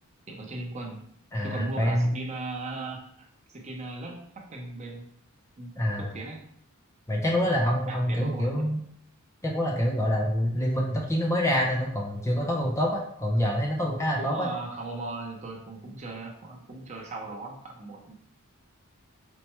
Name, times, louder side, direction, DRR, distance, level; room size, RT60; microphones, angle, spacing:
voice 1, 0.3-1.0 1.4-5.0 5.6-5.7 6.0-6.4 7.3-7.5 7.9-8.7 14.2-18.1, right 2 dB, 30° right, 0 dB, 0.6 m, -38 dB
voice 2, 1.3-2.1 5.8-6.1 7.1-8.8 9.4-14.5, equal, 15° left, -1 dB, 0.4 m, -26 dB
4.4 x 2.1 x 2.9 m, 0.67 s
head